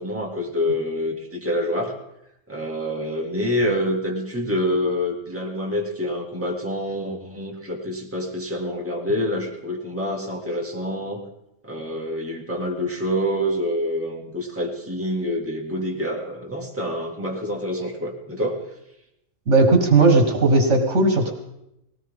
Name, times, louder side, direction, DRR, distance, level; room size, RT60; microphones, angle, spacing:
voice 1, 0.0-2.0 2.5-11.2 11.6-18.6, equal, 10° right, -1 dB, 2.1 m, -27 dB
voice 2, 19.5-21.3, right 3 dB, 60° right, 4 dB, 1.9 m, -16 dB
19.0 x 18.0 x 3.7 m, 0.85 s
omnidirectional pair, 1.4 m